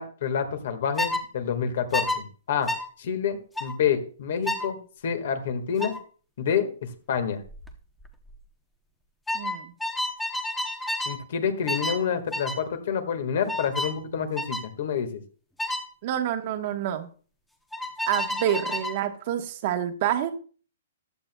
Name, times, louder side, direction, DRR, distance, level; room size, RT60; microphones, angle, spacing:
voice 1, 0.0-2.7 3.0-5.9 6.4-7.4 11.1-15.2, left 7 dB, 60° left, 8 dB, 1.7 m, -28 dB
sound 1, 1.0-1.2 1.9-2.2 2.7-2.9 3.6-3.7 4.5-4.7 5.8-6.0 7.5-7.7 8.0-8.4 9.3-11.2 11.7-12.0 12.3-12.6 13.5-14.0 14.4-14.7 15.6-15.9 17.7-19.0, left 1 dB, 5° left, 0.9 m, -30 dB
voice 2, 9.3-9.7 16.0-17.1 18.1-20.3, right 11 dB, 40° right, 7 dB, 1.2 m, -27 dB
14.5 x 10.5 x 2.3 m, 0.40 s
hypercardioid pair, 160°, 0 cm